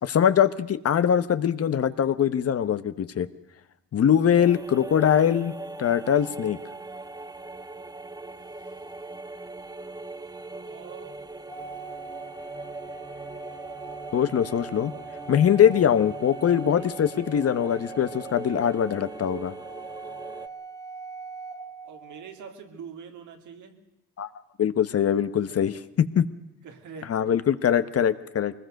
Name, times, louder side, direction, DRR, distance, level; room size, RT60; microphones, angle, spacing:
voice 1, 0.0-3.3 3.9-5.5 5.8-6.6 14.1-14.9 15.3-19.5 24.2-24.3 24.6-26.3 27.1-28.5, left 9 dB, 50° left, 13 dB, 1.1 m, -22 dB
sound 1, 4.3-20.5, right 2 dB, 15° right, 1.0 m, -40 dB
voice 2, 10.5-11.2 16.7-16.9 21.8-23.8 25.5-25.8 26.6-27.2, right 6 dB, 75° right, 4 dB, 2.9 m, -44 dB
Organ, 11.5-22.3, right 4 dB, 10° left, 1.1 m, -42 dB
23.0 x 20.0 x 6.5 m, 0.87 s
cardioid pair, 90°, 30 cm